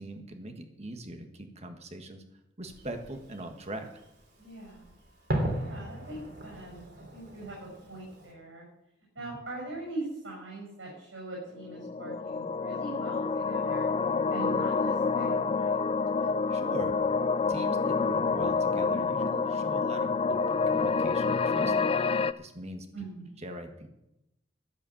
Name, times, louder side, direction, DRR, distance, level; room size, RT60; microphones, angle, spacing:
voice 1, 0.0-2.2 2.6-3.9 9.2-9.3 16.2-16.9 17.5-21.7 22.4-22.9 23.4-23.9, right 1 dB, 35° right, 6 dB, 1.6 m, -41 dB
Fireworks, 2.6-8.3, right 1 dB, 60° right, 3.2 m, -38 dB
voice 2, 4.4-4.9 5.6-8.6 9.1-13.9 14.3-15.8 22.9-23.2, right 2 dB, 85° right, -3 dB, 6.3 m, -41 dB
sound 1, 11.6-22.3, left 4 dB, 30° left, 0.4 m, -28 dB
12.5 x 8.4 x 7.2 m, 0.86 s
head